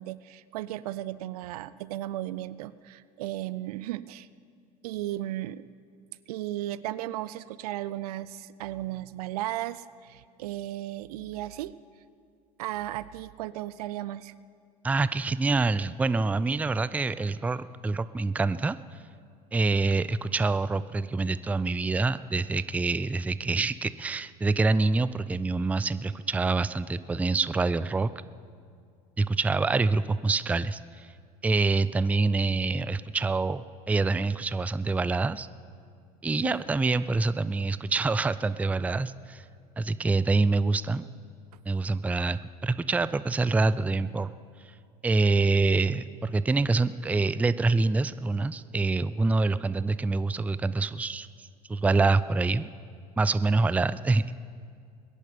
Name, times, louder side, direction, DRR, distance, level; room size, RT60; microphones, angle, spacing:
voice 1, 0.0-4.3 4.8-5.6 6.3-11.7 12.6-14.3 36.4-36.6, right 14 dB, 70° right, 17 dB, 0.5 m, -35 dB
voice 2, 14.8-18.8 19.5-28.1 29.2-31.1 31.4-35.5 36.2-39.4 39.8-41.1 41.7-44.3 45.0-51.3 51.7-52.7 53.2-54.3, right 3 dB, 5° right, 15 dB, 0.4 m, -26 dB
22.0 x 10.5 x 5.1 m, 2.3 s
hypercardioid pair, 75°, 20 cm